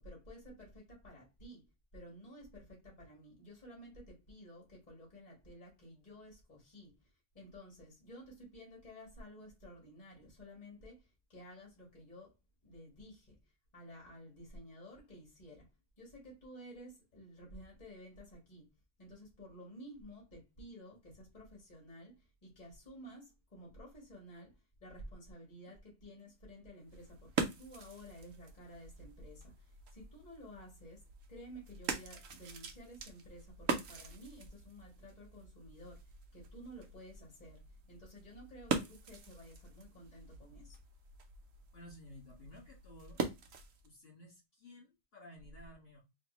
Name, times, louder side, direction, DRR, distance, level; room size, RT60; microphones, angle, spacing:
voice 1, 0.0-1.7 1.9-7.1 7.3-12.3 12.6-13.4 13.7-15.7 16.0-18.7 19.0-36.0 36.3-40.8, equal, 35° left, 1.8 m, -53 dB
sound 1, 26.8-43.9, right 5 dB, 80° right, 1.1 m, -43 dB
voice 2, 41.7-43.2 43.8-46.0, left 1 dB, 50° left, 1.9 m, -55 dB
4.2 x 2.9 x 2.9 m
omnidirectional pair, 1.4 m